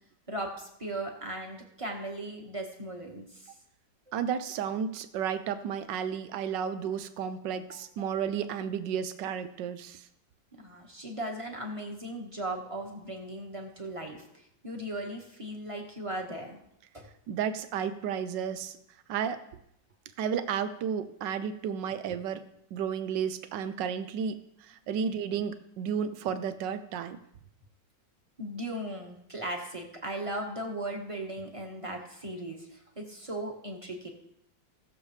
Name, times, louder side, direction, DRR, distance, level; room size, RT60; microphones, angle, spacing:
voice 1, 0.3-3.5 7.7-8.1 10.6-16.6 16.9-17.1 28.4-34.1, right 1 dB, 20° right, 1 dB, 1.5 m, -38 dB
voice 2, 4.1-10.0 17.3-18.8 19.1-19.4 20.2-22.4 22.7-27.2, right 7 dB, 75° right, 11 dB, 1.4 m, -32 dB
18.0 x 7.0 x 3.3 m, 0.76 s
omnidirectional pair, 2.0 m